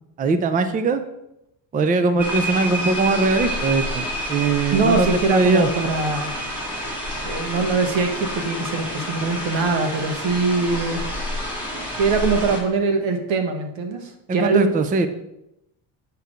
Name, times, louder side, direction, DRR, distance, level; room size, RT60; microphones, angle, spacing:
voice 1, 0.2-1.0 1.7-5.7 14.3-15.1, right 3 dB, 20° right, 10 dB, 0.4 m, -21 dB
sound 1, 2.2-12.6, equal, 5° right, 2.2 m, -29 dB
voice 2, 4.7-6.3 7.2-11.0 12.0-14.8, right 4 dB, 70° right, 6 dB, 1.4 m, -22 dB
8.1 x 4.7 x 5.0 m, 0.83 s
cardioid pair, 155°, 47 cm